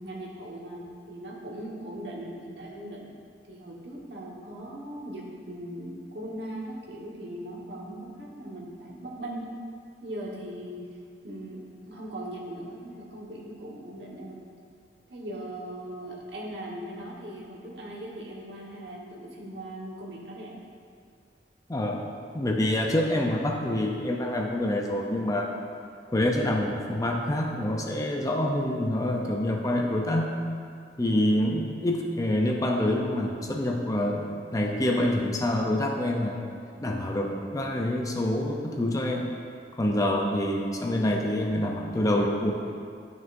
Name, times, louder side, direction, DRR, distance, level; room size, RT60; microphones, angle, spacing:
voice 1, 0.0-3.2 3.5-9.4 10.0-10.8 11.2-14.4 15.1-20.6, right 1 dB, 70° right, -3 dB, 1.4 m, -39 dB
voice 2, 21.7-22.0 22.3-25.5 26.1-30.3 31.0-36.4 36.8-39.3 39.8-42.5, left 1 dB, 20° left, 1 dB, 0.5 m, -26 dB
11.5 x 6.2 x 2.6 m, 2.2 s
head